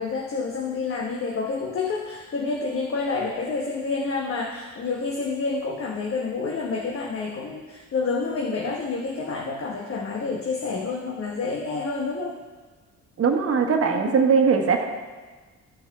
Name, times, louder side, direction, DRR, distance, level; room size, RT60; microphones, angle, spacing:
voice 1, 0.0-12.4 13.9-14.1, left 4 dB, 45° left, -1 dB, 1.1 m, -28 dB
voice 2, 13.2-14.8, right 5 dB, 50° right, 3 dB, 1.3 m, -20 dB
13.5 x 5.6 x 3.5 m, 1.3 s
cardioid pair, 90°, 30 cm